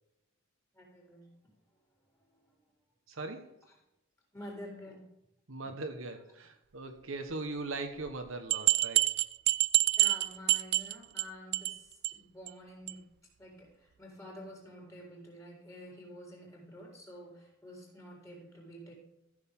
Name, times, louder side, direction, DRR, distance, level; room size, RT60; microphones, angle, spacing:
voice 1, 0.7-1.4 2.1-2.6 4.3-5.1 5.6-5.7 7.0-7.1 10.0-13.0 13.4-18.9, equal, 15° left, -2 dB, 4.0 m, -49 dB
voice 2, 3.1-3.5 5.5-9.1, right 3 dB, 70° right, 6 dB, 1.2 m, -40 dB
sound 1, 8.1-8.2 8.5-11.2 11.5-11.8 12.0-12.1 12.5-12.6 12.9-13.0, right 16 dB, 50° right, 0.3 m, -27 dB
14.5 x 6.7 x 3.7 m, 0.85 s
head